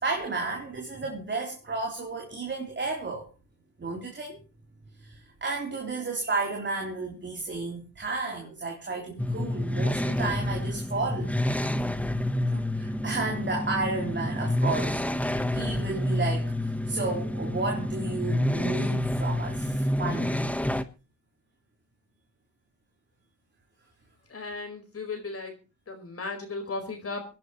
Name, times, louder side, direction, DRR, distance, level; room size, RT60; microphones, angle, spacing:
voice 1, 0.0-3.3 3.8-4.4 5.0-11.3 12.5-15.0 15.5-20.5, right 3 dB, 25° right, 3.8 m, -32 dB
sound 1, 9.2-20.8, left 1 dB, 5° left, 1.2 m, -28 dB
voice 2, 24.3-25.5 25.9-27.3, left 3 dB, 30° left, 5.0 m, -35 dB
25.5 x 10.5 x 3.1 m
supercardioid pair, 80°, 45 cm